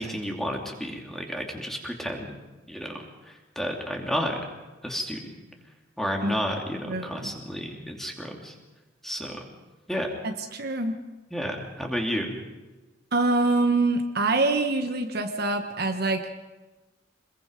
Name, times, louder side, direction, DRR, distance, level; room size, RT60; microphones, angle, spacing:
voice 1, 0.0-2.4 2.7-2.9 3.3-4.4 4.8-5.3 6.0-8.5 9.0-9.4 9.9-10.1 11.3-12.4, equal, ahead, 1 dB, 2.7 m, -31 dB
voice 2, 6.9-7.3 10.2-11.0 13.1-16.3, right 2 dB, 50° right, 6 dB, 1.2 m, -25 dB
26.0 x 21.5 x 5.2 m, 1.2 s
head